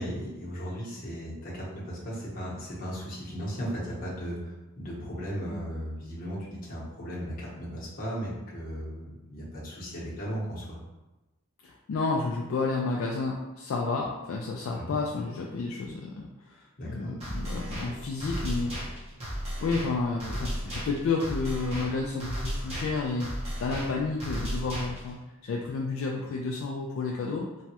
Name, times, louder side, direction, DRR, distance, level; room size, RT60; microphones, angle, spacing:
voice 1, 0.0-10.8 14.7-14.9 16.8-17.2, equal, 40° left, -6 dB, 0.9 m, -36 dB
voice 2, 11.6-19.0 19.6-23.3 23.6-27.5, left 3 dB, 65° left, -1 dB, 0.3 m, -31 dB
sound 1, 17.2-25.2, equal, 30° right, 0.7 m, -35 dB
3.1 x 2.3 x 2.8 m, 1.1 s
head